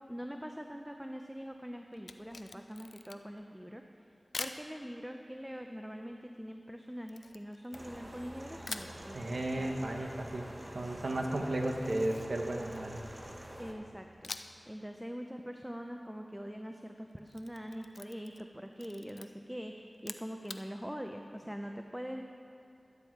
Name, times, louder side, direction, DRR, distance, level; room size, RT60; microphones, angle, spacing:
voice 1, 0.1-3.8 4.4-9.2 9.6-9.7 13.6-14.3 14.7-22.2, equal, 5° right, 4 dB, 0.5 m, -43 dB
Camera, 1.9-3.4 4.3-4.6 7.1-8.2 8.6-9.0 11.6-13.1 14.2-14.7 15.0-15.1 17.1-18.5 18.8-19.3 19.9-20.6, left 3 dB, 90° left, 0.4 m, -45 dB
sound 1, 7.7-13.7, right 1 dB, 30° right, 1.4 m, -47 dB
voice 2, 9.1-10.5 10.7-13.0, right 1 dB, 80° right, 2 dB, 0.9 m, -34 dB
12.5 x 8.8 x 4.6 m, 2.6 s
wide cardioid pair, 45°, 0 cm